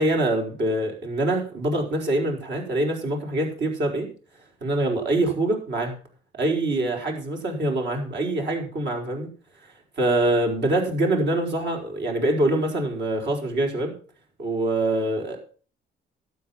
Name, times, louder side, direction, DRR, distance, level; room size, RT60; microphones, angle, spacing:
voice 1, 0.0-4.1 4.6-5.9 6.4-9.3 10.0-13.9 14.4-15.4, right 1 dB, 60° right, 1 dB, 4.7 m, -24 dB
12.0 x 8.5 x 5.9 m, 0.40 s
cardioid pair, 90°, 20 cm